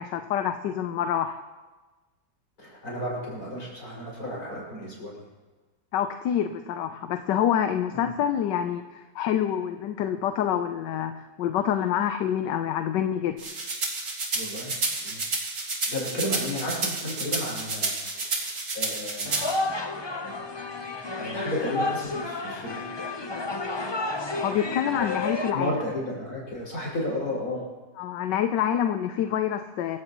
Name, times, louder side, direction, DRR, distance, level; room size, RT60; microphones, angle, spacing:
voice 1, 0.0-1.4 5.9-13.4 24.4-25.7 28.0-30.0, left 9 dB, 80° left, 8 dB, 1.3 m, -27 dB
voice 2, 2.6-5.3 7.9-8.1 14.3-14.7 15.0-15.2 15.9-18.4 18.7-19.5 20.2-20.5 21.2-22.8 23.2-23.3 23.8-23.9 24.9-25.1 25.5-27.6, left 1 dB, 55° left, -4 dB, 6.5 m, -33 dB
sound 1, 13.4-19.5, right 3 dB, 70° right, 3.0 m, -30 dB
sound 2, 19.2-25.5, left 2 dB, 30° left, 0.5 m, -31 dB
25.0 x 15.0 x 3.0 m, 1.2 s
omnidirectional pair, 1.9 m